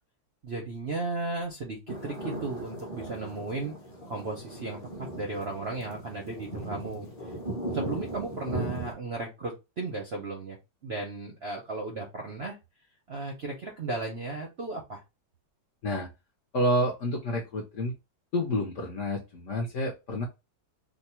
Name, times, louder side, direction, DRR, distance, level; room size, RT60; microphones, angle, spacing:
voice 1, 0.4-3.7 4.1-4.8 5.1-7.1 7.7-12.6 13.1-15.0, right 3 dB, 60° right, -1 dB, 0.6 m, -35 dB
sound 1, 1.9-8.9, right 1 dB, 30° left, 0.7 m, -38 dB
voice 2, 16.5-17.9 18.3-20.2, equal, 60° left, -1 dB, 0.8 m, -29 dB
3.0 x 2.2 x 4.2 m, 0.25 s
omnidirectional pair, 2.0 m